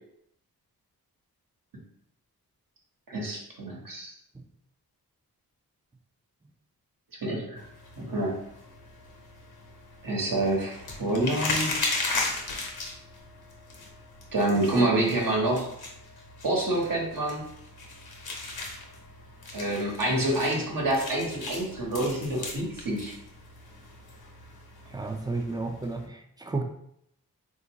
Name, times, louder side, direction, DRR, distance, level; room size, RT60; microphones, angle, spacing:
voice 1, 3.1-4.1 7.2-7.6 8.0-8.4 10.0-12.0 14.3-15.7 16.4-17.4 19.5-23.1, right 1 dB, 60° right, -2 dB, 1.2 m, -27 dB
sound 1, 7.6-26.1, left 3 dB, 80° left, 0.9 m, -37 dB
voice 2, 24.9-26.6, right 3 dB, 10° right, 4 dB, 0.4 m, -32 dB
3.5 x 2.6 x 2.9 m, 0.74 s
cardioid pair, 60°, 37 cm